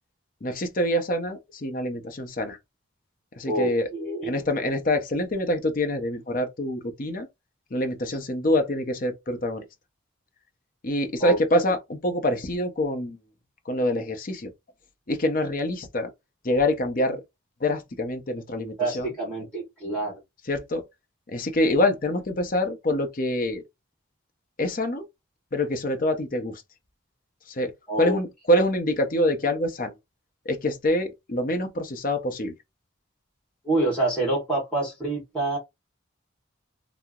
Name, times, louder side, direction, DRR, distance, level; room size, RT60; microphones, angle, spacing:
voice 1, 0.4-2.6 3.4-3.9 4.2-7.3 7.7-9.6 10.8-13.2 13.7-14.5 15.1-16.1 16.4-17.2 17.6-19.1 20.5-20.8 21.3-23.6 24.6-25.0 25.5-26.6 27.5-27.7 28.0-29.9 30.5-32.5, left 1 dB, 40° left, 0.6 m, -25 dB
voice 2, 3.5-4.4 11.2-11.4 18.8-20.2 27.9-28.2 33.6-35.6, right 2 dB, 5° left, 1.2 m, -27 dB
2.8 x 2.0 x 3.5 m
head